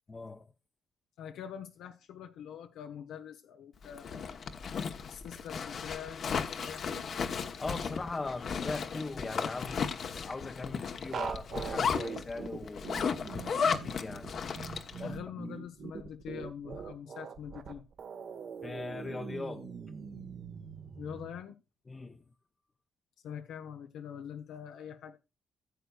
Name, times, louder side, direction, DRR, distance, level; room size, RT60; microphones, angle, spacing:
voice 1, 0.1-0.5 7.6-12.9 13.8-14.3 15.0-15.2 18.6-19.7 21.9-22.2, left 3 dB, 25° left, 0.8 m, -40 dB
voice 2, 1.2-4.2 5.0-7.1 15.0-17.8 21.0-21.6 23.2-25.2, left 8 dB, 85° left, 1.0 m, -44 dB
Zipper (clothing), 3.8-15.0, left 6 dB, 55° left, 1.1 m, -35 dB
sound 1, 11.1-21.3, right 6 dB, 60° right, 1.5 m, -42 dB
15.0 x 8.0 x 2.4 m
cardioid pair, 90°, 0 cm